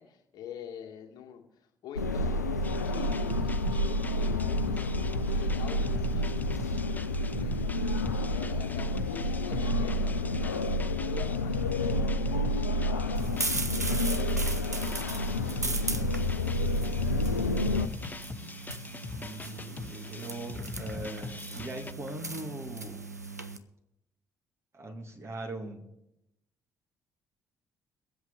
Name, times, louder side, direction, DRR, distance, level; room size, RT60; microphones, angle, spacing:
voice 1, 0.0-6.7 7.3-7.9 8.3-10.7 11.0-15.3, left 9 dB, 50° left, 1 dB, 2.0 m, -47 dB
sound 1, 2.0-17.9, left 1 dB, 85° left, 0.4 m, -29 dB
sound 2, 2.6-21.9, left 3 dB, 20° left, 0.6 m, -42 dB
sound 3, 13.1-23.6, right 2 dB, 90° right, 0.5 m, -38 dB
voice 2, 15.4-17.0 19.2-23.0 24.7-25.9, right 1 dB, 30° right, 1 dB, 2.2 m, -42 dB
23.5 x 7.9 x 3.9 m, 0.87 s
figure-of-eight pair, 45°, 9 cm